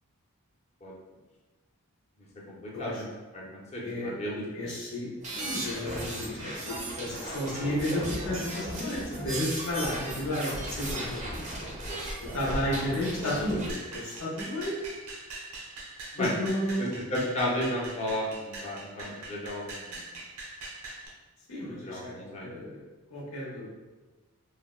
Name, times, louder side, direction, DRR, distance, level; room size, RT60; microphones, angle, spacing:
voice 1, 2.5-3.1 3.3-4.7 13.2-13.4 16.1-16.3 17.1-20.0 21.9-22.5, left 1 dB, 30° left, -3 dB, 0.5 m, -33 dB
voice 2, 3.8-4.1 4.5-11.5 12.2-14.8 16.2-16.9 21.5-22.8 23.1-23.7, left 1 dB, 75° left, -5 dB, 0.8 m, -32 dB
sound 1, 5.2-13.7, right 1 dB, 35° right, 0.4 m, -36 dB
sound 2, 13.7-21.1, right 2 dB, 85° right, 0.7 m, -42 dB
3.3 x 2.1 x 2.3 m, 1.2 s
head